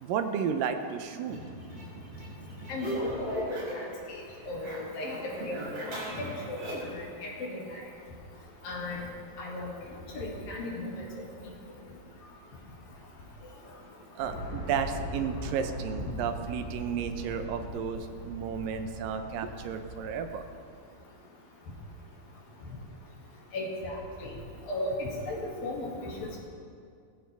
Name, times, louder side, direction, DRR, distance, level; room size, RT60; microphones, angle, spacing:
voice 1, 0.0-1.4 14.2-20.5, right 7 dB, 80° right, 7 dB, 2.4 m, -33 dB
sound 1, 1.3-3.9 4.2-7.0, equal, 45° right, 5.9 m, -39 dB
voice 2, 2.7-5.2 5.4-6.0 6.5-6.6 6.9-7.8 8.6-9.1 9.4-9.7 10.1-11.0 23.5-24.3 24.7-26.4, left 1 dB, 80° left, -3 dB, 4.2 m, -35 dB
sound 2, 14.2-20.4, right 1 dB, 30° left, 4.6 m, -40 dB
19.5 x 15.0 x 3.5 m, 2.3 s
omnidirectional pair, 4.1 m